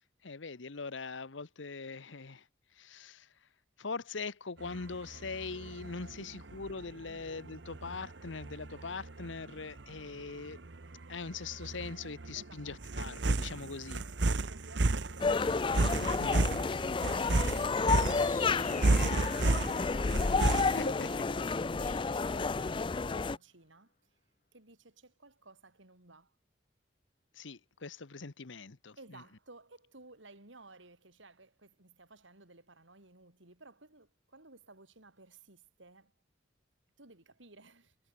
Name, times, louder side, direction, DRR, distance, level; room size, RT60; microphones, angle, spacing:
voice 1, 0.2-2.5 2.7-3.3 3.8-10.7 11.1-14.0 16.2-16.5 20.7-21.1 27.3-29.0, left 4 dB, 80° left, 1.0 m, -42 dB
sound 1, 4.6-20.9, right 2 dB, 70° right, 1.1 m, -33 dB
voice 2, 6.1-6.4 7.0-7.3 12.4-12.7 14.2-16.6 17.0-24.2 24.5-26.4 29.0-36.1 37.0-38.0, right 2 dB, 90° right, 5.6 m, -56 dB
sound 2, 15.2-23.4, left 4 dB, 25° left, 0.4 m, -31 dB
sound 3, 17.4-23.1, left 4 dB, 45° left, 2.1 m, -46 dB
head